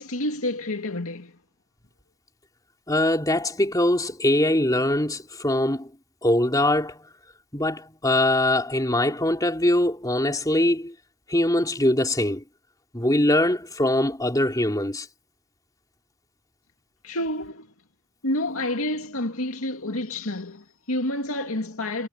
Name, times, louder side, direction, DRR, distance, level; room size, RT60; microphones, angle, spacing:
voice 1, 0.0-1.3 17.0-17.7 18.2-22.1, left 1 dB, 70° left, 2.5 m, -29 dB
voice 2, 2.9-5.9 6.2-7.0 7.5-10.9 11.3-12.4 12.9-15.1, left 1 dB, 15° left, 3.4 m, -22 dB
head